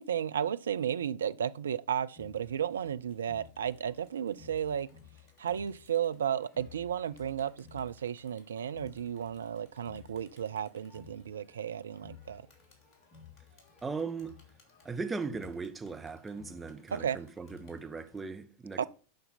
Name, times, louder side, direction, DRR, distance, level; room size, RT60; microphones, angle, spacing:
voice 1, 0.0-4.9 5.4-12.4 16.9-17.2 18.8-18.9, right 9 dB, 65° right, 0.4 m, -33 dB
Crowd, 2.2-18.2, left 7 dB, 30° left, 3.0 m, -57 dB
voice 2, 13.8-14.4 14.8-18.9, right 4 dB, 15° right, 0.7 m, -38 dB
8.7 x 5.7 x 5.8 m
figure-of-eight pair, 90°, 0 cm